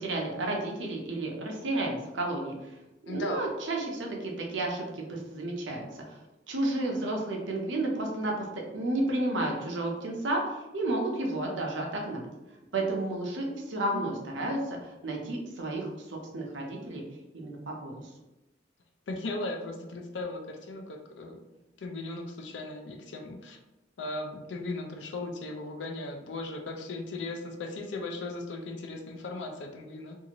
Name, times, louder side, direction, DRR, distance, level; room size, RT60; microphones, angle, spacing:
voice 1, 0.0-2.6 3.0-6.2 6.5-12.3 12.7-17.0 17.3-18.0, right 2 dB, 85° right, 0 dB, 0.7 m, -32 dB
voice 2, 3.1-3.5 13.4-13.7 13.9-14.1 19.1-21.4 21.8-23.6 24.0-30.2, left 2 dB, 80° left, 4 dB, 0.5 m, -37 dB
2.7 x 2.5 x 2.9 m, 1.0 s
head